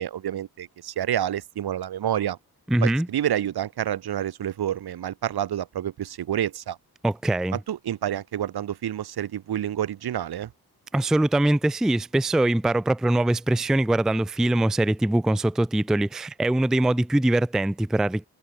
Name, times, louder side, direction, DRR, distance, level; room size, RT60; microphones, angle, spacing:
voice 1, 0.0-2.4 2.8-6.8 7.5-10.5, right 11 dB, 75° right, 1.6 m, -28 dB
voice 2, 2.7-3.1 7.0-7.6 10.9-18.3, right 1 dB, ahead, 0.4 m, -22 dB
cardioid pair, 95°, 39 cm